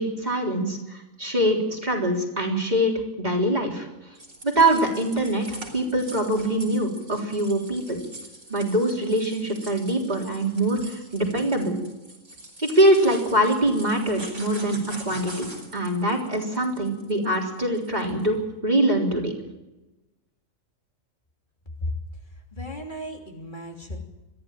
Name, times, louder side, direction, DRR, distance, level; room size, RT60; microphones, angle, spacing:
voice 1, 0.0-3.9 4.4-8.0 8.5-11.7 12.7-14.8 15.1-18.4 18.6-19.3, right 1 dB, 30° right, 0 dB, 3.8 m, -23 dB
sound 1, 4.2-18.3, right 2 dB, 60° right, 4.6 m, -44 dB
voice 2, 22.5-24.0, left 1 dB, 35° left, 1 dB, 3.3 m, -34 dB
23.0 x 14.5 x 9.0 m, 1.0 s
omnidirectional pair, 1.4 m